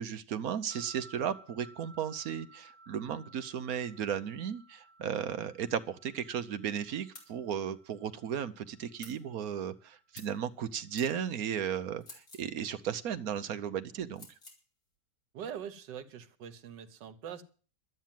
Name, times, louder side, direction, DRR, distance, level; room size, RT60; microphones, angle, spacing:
voice 1, 0.0-14.3, right 8 dB, 60° right, 1.2 m, -35 dB
sound 1, 0.7-10.0, right 2 dB, 30° right, 2.5 m, -58 dB
sound 2, 7.1-7.3 9.0-9.2 10.1-10.4 11.0-11.1 12.0-12.5 14.1-14.6, left 2 dB, 45° left, 3.5 m, -50 dB
voice 2, 15.3-17.4, right 8 dB, 85° right, 1.7 m, -43 dB
12.0 x 9.3 x 7.5 m
omnidirectional pair, 1.9 m